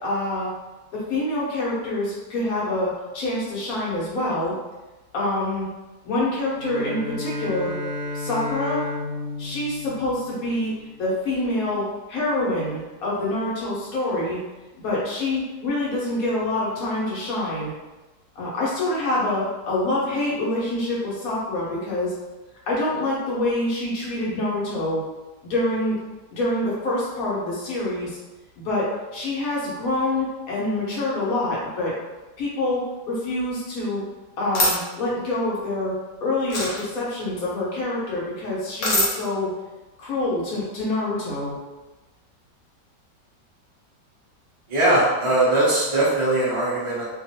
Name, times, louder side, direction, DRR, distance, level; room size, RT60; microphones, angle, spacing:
voice 1, 0.0-0.5 0.9-4.5 5.1-5.7 6.0-7.8 8.1-8.9 9.4-10.7 11.0-14.4 14.8-17.7 18.3-22.1 22.7-25.0 25.4-26.0 26.3-28.2 28.6-31.9 32.4-34.0 34.4-36.0 36.2-39.5 40.0-41.5, left 2 dB, 60° left, -6 dB, 1.3 m, -26 dB
Bowed string instrument, 6.5-10.9, left 1 dB, 75° right, 1.1 m, -32 dB
sound 1, 34.5-34.7 36.5-36.8 38.8-39.1, left 1 dB, 80° left, 1.4 m, -21 dB
voice 2, 44.7-47.0, right 1 dB, 55° right, -8 dB, 0.3 m, -20 dB
2.9 x 2.5 x 2.8 m, 1.1 s
omnidirectional pair, 1.8 m